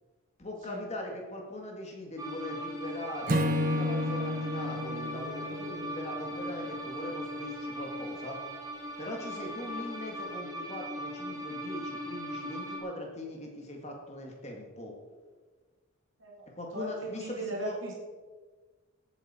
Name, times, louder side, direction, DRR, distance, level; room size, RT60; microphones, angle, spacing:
voice 1, 0.4-8.4 9.0-15.0 16.5-17.8, left 1 dB, 30° left, 1 dB, 2.0 m, -40 dB
sound 1, 2.2-12.8, equal, 15° right, 1.7 m, -39 dB
Acoustic guitar / Strum, 3.3-6.6, left 1 dB, 40° right, 1.0 m, -31 dB
voice 2, 16.7-17.9, right 1 dB, 55° right, -2 dB, 2.2 m, -38 dB
17.0 x 8.2 x 4.4 m, 1.4 s
head